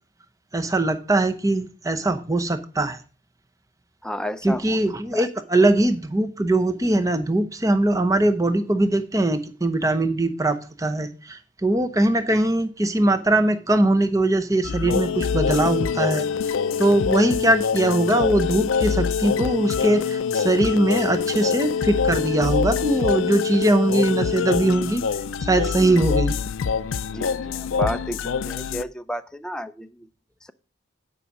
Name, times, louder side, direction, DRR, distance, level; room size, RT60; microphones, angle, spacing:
voice 1, 0.5-3.0 4.4-25.0 25.4-26.3, right 1 dB, 15° right, 8 dB, 0.8 m, -21 dB
voice 2, 4.0-4.8 5.1-5.3 25.8-26.1 27.1-30.1, left 1 dB, 5° left, 10 dB, 0.4 m, -32 dB
sound 1, 14.6-28.8, left 6 dB, 85° left, 0.5 m, -25 dB
9.8 x 5.4 x 6.0 m, 0.36 s
head